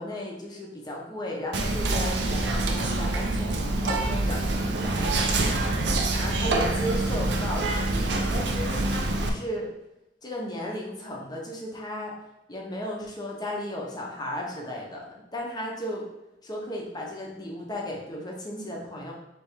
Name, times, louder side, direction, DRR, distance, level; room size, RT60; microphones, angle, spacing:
voice 1, 0.0-5.6 6.2-9.7 10.2-12.1 12.5-16.1 16.4-19.1, left 1 dB, 25° left, -2 dB, 0.9 m, -35 dB
Whispering, 1.5-9.3, right 2 dB, 75° right, 0.5 m, -26 dB
3.3 x 3.0 x 4.5 m, 0.90 s
head